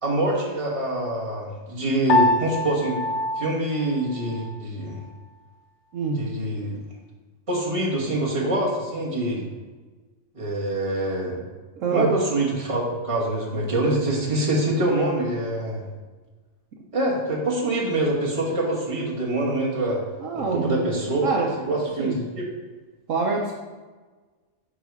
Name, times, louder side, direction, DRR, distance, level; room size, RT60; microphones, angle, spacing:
voice 1, 0.0-3.0 3.4-5.0 6.1-6.8 7.5-9.4 10.3-11.4 11.9-15.8 16.9-20.0 20.3-22.5, right 1 dB, 25° right, -4 dB, 1.5 m, -25 dB
Piano, 2.1-4.6, left 2 dB, 65° left, 1.0 m, -25 dB
voice 2, 5.9-6.3 11.8-12.1 20.2-20.8 21.2-21.5 22.0-22.2 23.1-23.5, right 4 dB, 70° right, 0 dB, 1.1 m, -25 dB
6.2 x 4.9 x 4.8 m, 1.3 s
omnidirectional pair, 1.4 m